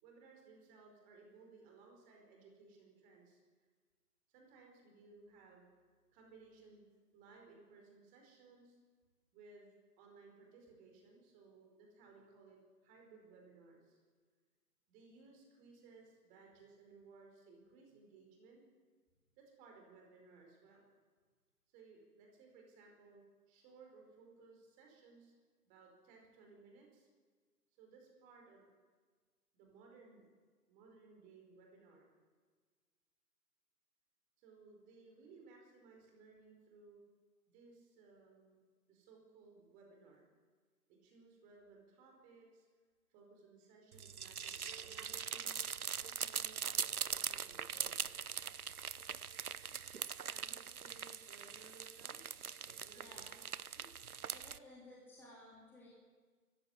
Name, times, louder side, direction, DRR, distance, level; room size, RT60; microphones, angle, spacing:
voice 1, 0.0-3.4 4.3-5.6 6.1-6.8 7.1-8.8 9.3-14.0 14.9-18.6 19.4-20.8 21.7-25.3 25.6-27.1 27.8-28.7 29.5-30.3 30.7-32.1 34.4-37.0 37.5-38.6 38.9-40.3 40.9-42.7 43.1-45.6 46.0-48.2 50.3-52.2 52.7-53.3 53.7-53.9, right 4 dB, 15° right, 1 dB, 4.7 m, -61 dB
sound 1, 43.9-54.6, right 7 dB, 65° right, 1.0 m, -42 dB
voice 2, 53.0-53.3 54.3-55.9, left 1 dB, 5° left, -6 dB, 3.4 m, -57 dB
24.5 x 15.0 x 9.7 m, 1.5 s
figure-of-eight pair, 145°, 47 cm